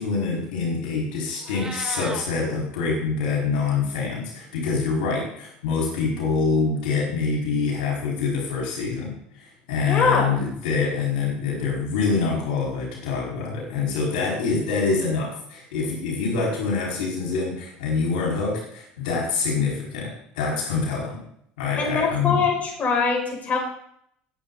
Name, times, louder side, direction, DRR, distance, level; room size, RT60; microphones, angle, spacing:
voice 1, 0.0-9.1 9.4-21.2 21.6-22.4, left 4 dB, 90° left, -2 dB, 4.9 m, -25 dB
Meow, 1.3-2.2, right 3 dB, 15° right, 2.6 m, -36 dB
voice 2, 9.8-10.3 21.8-23.6, left 4 dB, 35° left, -1 dB, 6.0 m, -23 dB
20.0 x 8.5 x 4.1 m, 0.70 s
supercardioid pair, 95°, 4 cm